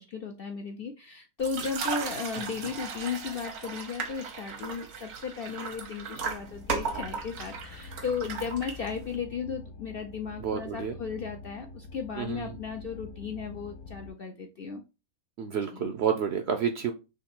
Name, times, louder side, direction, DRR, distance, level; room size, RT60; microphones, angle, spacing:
voice 1, 0.0-14.8 15.7-15.9, left 6 dB, 65° left, 3 dB, 0.6 m, -35 dB
sound 1, 1.4-9.2, right 5 dB, 85° right, 1.4 m, -36 dB
sound 2, 6.4-14.1, left 3 dB, 85° left, 1.3 m, -46 dB
voice 2, 10.4-10.9 12.2-12.6 15.4-16.9, right 7 dB, 65° right, 7 dB, 0.6 m, -30 dB
3.9 x 3.1 x 4.3 m, 0.29 s
omnidirectional pair, 1.5 m